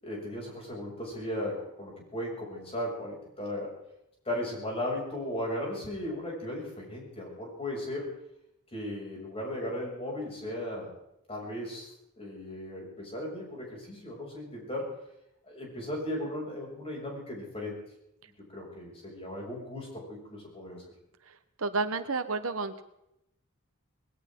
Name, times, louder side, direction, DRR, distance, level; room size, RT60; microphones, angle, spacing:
voice 1, 0.0-3.7 4.3-8.0 8.7-10.9 11.3-11.9 12.2-14.9 15.4-17.7 18.5-20.8, left 1 dB, 30° left, -3 dB, 7.0 m, -36 dB
voice 2, 21.6-22.8, right 3 dB, 70° right, 10 dB, 1.1 m, -30 dB
20.5 x 17.5 x 3.8 m, 0.83 s
head